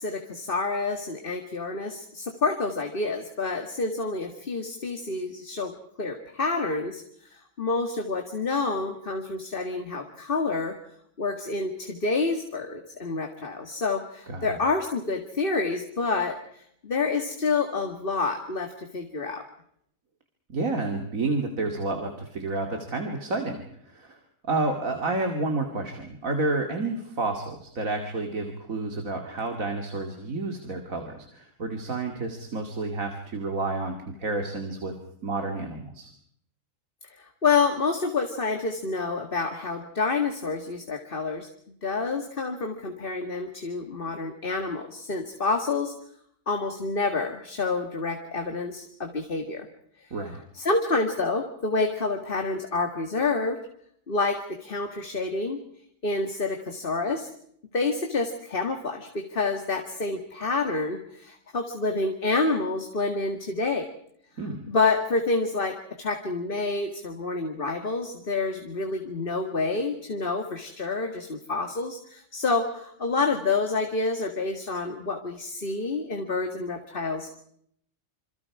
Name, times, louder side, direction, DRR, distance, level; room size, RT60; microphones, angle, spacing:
voice 1, 0.0-5.7 6.0-10.8 11.2-19.4 37.2-41.5 41.8-45.9 46.5-49.7 50.0-50.1 50.5-53.6 54.1-55.6 56.0-57.3 57.7-63.8 64.7-77.4, left 3 dB, 40° left, 5 dB, 2.1 m, -28 dB
voice 2, 20.5-24.2 24.5-34.9 35.2-36.1 50.1-50.4 64.4-64.7, right 3 dB, 80° right, 4 dB, 2.8 m, -30 dB
27.5 x 27.0 x 4.8 m, 0.67 s
omnidirectional pair, 1.4 m